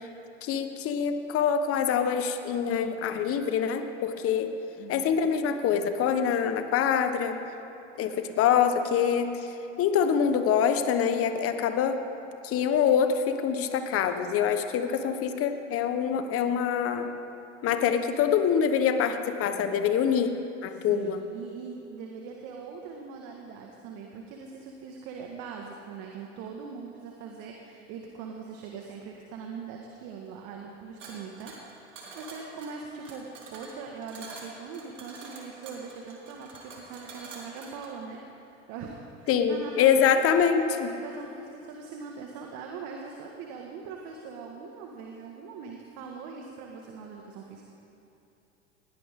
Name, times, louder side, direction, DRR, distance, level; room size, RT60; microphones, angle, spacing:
voice 1, 0.4-4.5 4.9-7.4 8.0-9.5 9.8-12.0 12.4-17.1 17.6-20.3 20.6-21.2 39.3-40.9, left 7 dB, 40° left, 8 dB, 1.3 m, -25 dB
voice 2, 4.8-5.1 20.7-40.5 40.8-47.6, right 5 dB, 50° right, 1 dB, 1.8 m, -42 dB
sound 1, 31.0-38.0, right 3 dB, 85° right, 3.1 m, -46 dB
20.5 x 17.0 x 3.8 m, 2.9 s
hypercardioid pair, 95°, 37 cm